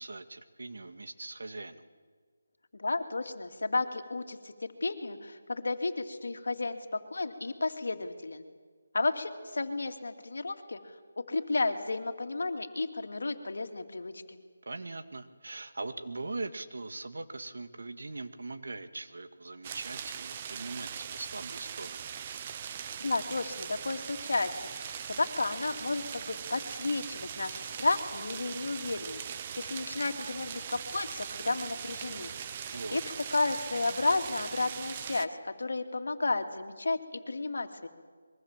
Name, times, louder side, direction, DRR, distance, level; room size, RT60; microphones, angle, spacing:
voice 1, 0.0-1.8 14.7-22.1 32.7-33.0, right 3 dB, 75° right, 9 dB, 1.9 m, -41 dB
voice 2, 2.7-8.4 8.9-14.4 23.0-29.2 29.6-32.3 32.6-33.0 33.3-37.9, left 3 dB, 75° left, 7 dB, 2.5 m, -32 dB
sound 1, 19.6-35.3, right 8 dB, 25° right, 0.7 m, -40 dB
24.5 x 22.5 x 7.5 m, 1.5 s
figure-of-eight pair, 170°, 0 cm